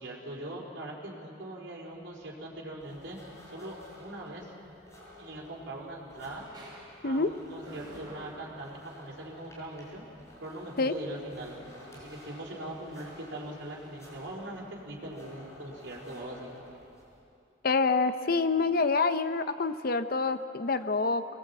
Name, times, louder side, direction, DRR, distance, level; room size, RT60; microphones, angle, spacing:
voice 1, 0.0-3.2 3.5-4.5 5.2-6.5 7.0-10.1 10.4-11.6 11.9-16.5, right 1 dB, 65° right, -3 dB, 4.1 m, -41 dB
sound 1, 2.0-14.3, right 1 dB, 20° right, 5.0 m, -56 dB
sound 2, 2.8-17.2, left 1 dB, 15° left, 5.8 m, -52 dB
voice 2, 17.6-21.3, left 4 dB, 50° left, 11 dB, 0.8 m, -27 dB
23.0 x 19.5 x 8.3 m, 2.6 s
head